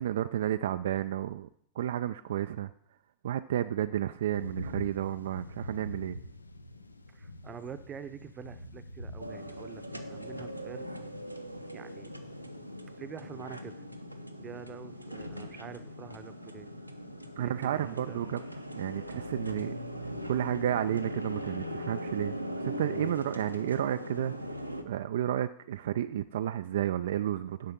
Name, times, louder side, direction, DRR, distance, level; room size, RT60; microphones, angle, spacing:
voice 1, 0.0-1.5 1.8-2.7 3.2-6.2 17.4-19.7 20.3-24.3 24.8-27.7, right 11 dB, 60° right, 10 dB, 0.3 m, -32 dB
sound 1, 4.3-13.0, left 1 dB, 80° left, 0.5 m, -45 dB
voice 2, 7.1-10.9 11.7-12.1 13.0-13.7 14.4-16.7 17.4-18.2, right 7 dB, 25° right, 12 dB, 0.7 m, -46 dB
sound 2, 9.2-24.8, equal, 90° right, 0.7 m, -40 dB
7.5 x 5.7 x 7.0 m, 0.68 s
figure-of-eight pair, 90°, 0 cm